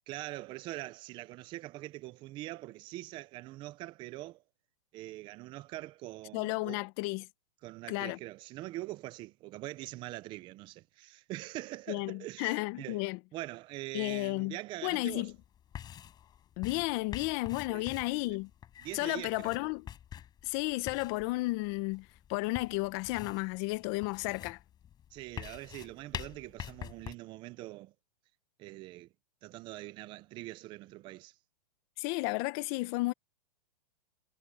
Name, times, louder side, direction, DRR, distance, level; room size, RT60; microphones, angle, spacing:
voice 1, 0.1-4.4 4.9-6.8 7.6-13.1 13.3-15.3 17.7-17.8 18.2-18.4 18.8-19.6 25.1-27.9 28.6-29.1 29.4-31.3, right 18 dB, 25° right, 0.7 m, -43 dB
voice 2, 6.3-7.3 7.9-8.2 11.9-13.2 13.9-14.6 14.8-15.3 16.6-18.5 18.9-19.9 20.4-24.6 32.0-33.1, left 23 dB, 35° left, 1.3 m, -33 dB
Writing With Chalk, 14.9-27.1, left 10 dB, 20° left, 6.2 m, -47 dB
hypercardioid pair, 150°, 21 cm